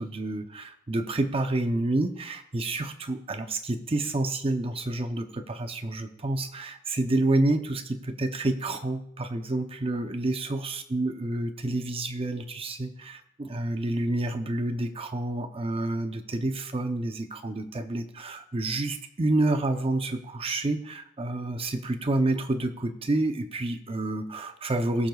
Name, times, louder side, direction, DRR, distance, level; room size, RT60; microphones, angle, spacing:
voice 1, 0.0-25.1, right 2 dB, 30° right, 8 dB, 0.6 m, -29 dB
22.0 x 7.7 x 2.4 m, 0.73 s
head